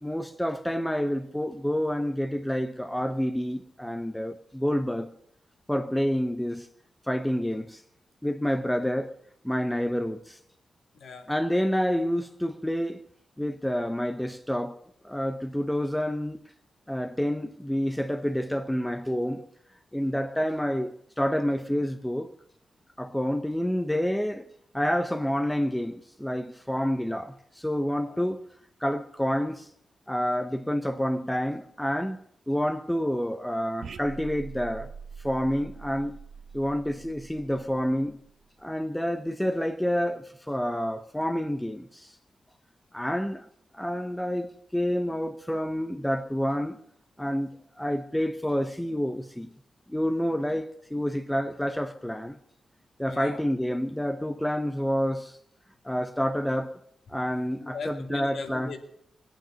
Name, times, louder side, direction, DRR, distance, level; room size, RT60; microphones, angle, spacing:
voice 1, 0.0-5.1 5.7-6.7 7.1-7.8 8.2-9.2 9.4-10.4 11.3-13.0 13.4-14.8 15.0-16.4 16.9-19.4 19.9-22.3 23.0-24.5 24.7-28.4 28.8-29.7 30.1-34.9 35.2-36.2 36.5-38.2 38.6-42.1 42.9-43.5 43.8-46.8 47.2-49.5 49.9-52.4 53.0-55.3 55.8-56.8 57.1-58.7, equal, 5° left, 0.7 m, -28 dB
voice 2, 10.9-11.3 28.1-28.2 53.1-53.4 57.6-58.8, left 5 dB, 75° left, 2.4 m, -39 dB
sound 1, 33.8-38.5, right 6 dB, 60° right, 0.8 m, -44 dB
21.0 x 9.1 x 6.9 m
wide cardioid pair, 145°, 0 cm